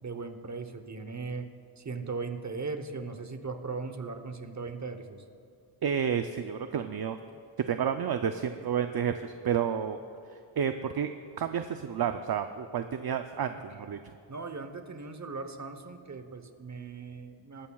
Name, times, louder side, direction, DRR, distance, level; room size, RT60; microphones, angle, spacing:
voice 1, 0.0-1.5 1.8-5.2 14.3-17.7, right 4 dB, 35° right, 8 dB, 0.9 m, -38 dB
voice 2, 5.8-7.2 7.7-10.0 10.6-14.0, right 8 dB, 55° right, 8 dB, 0.5 m, -30 dB
20.0 x 14.5 x 2.3 m, 2.6 s
wide cardioid pair, 105°, 46 cm